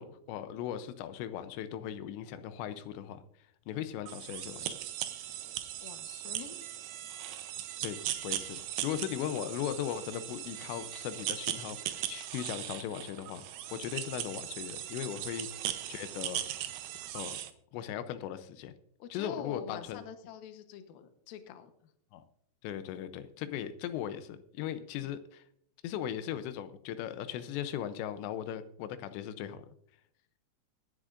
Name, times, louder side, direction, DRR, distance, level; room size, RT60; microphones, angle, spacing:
voice 1, 0.0-3.2 3.7-4.8 7.8-16.4 17.1-17.4 17.7-18.7 19.1-20.0 22.1-22.2 22.6-25.4 25.8-29.7, left 10 dB, 90° left, 11 dB, 3.0 m, -38 dB
sound 1, 4.1-17.5, right 12 dB, 85° right, 1.9 m, -39 dB
voice 2, 5.8-6.7 19.0-21.7, left 8 dB, 70° left, 8 dB, 2.5 m, -45 dB
22.5 x 10.0 x 2.5 m, 0.71 s
omnidirectional pair, 5.0 m